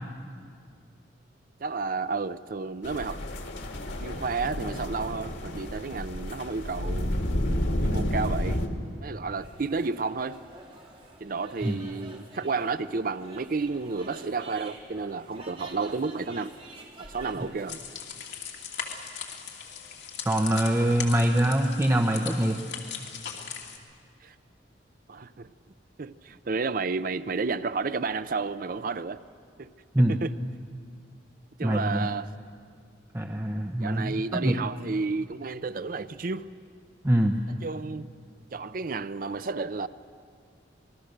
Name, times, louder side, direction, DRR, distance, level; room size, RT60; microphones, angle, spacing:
voice 1, 1.6-3.2 4.0-7.1 7.8-8.6 9.0-10.4 11.2-16.5 17.0-17.8 24.2-24.3 25.1-25.5 26.0-29.2 29.6-29.7 30.1-30.3 31.6-32.3 33.8-36.5 37.6-38.1 38.5-39.9, right 4 dB, 50° right, 14 dB, 0.5 m, -31 dB
sound 1, 2.8-8.7, equal, 85° left, 2.1 m, -30 dB
sound 2, 9.4-17.8, right 2 dB, 30° right, 2.8 m, -48 dB
sound 3, 17.7-23.8, left 7 dB, 70° left, 2.7 m, -39 dB
voice 2, 20.3-22.6 29.9-30.2 31.6-32.1 33.1-34.5 37.0-37.4, right 1 dB, 15° right, 3 dB, 0.9 m, -24 dB
27.0 x 21.0 x 6.7 m, 2.2 s
head